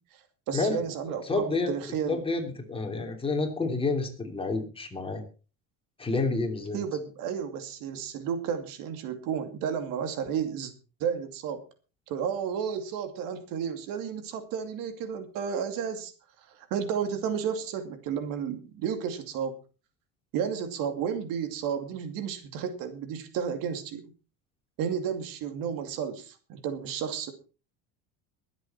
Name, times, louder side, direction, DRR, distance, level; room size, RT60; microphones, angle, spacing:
voice 1, 0.5-2.2 6.7-10.7 11.0-11.6 12.1-16.1 16.5-19.6 20.3-24.0 24.8-27.3, right 7 dB, 75° right, 8 dB, 2.5 m, -32 dB
voice 2, 1.3-1.7 2.1-5.2 6.0-6.8, left 3 dB, 15° left, 3 dB, 3.1 m, -29 dB
22.0 x 8.2 x 4.3 m, 0.35 s
cardioid pair, 140°, 34 cm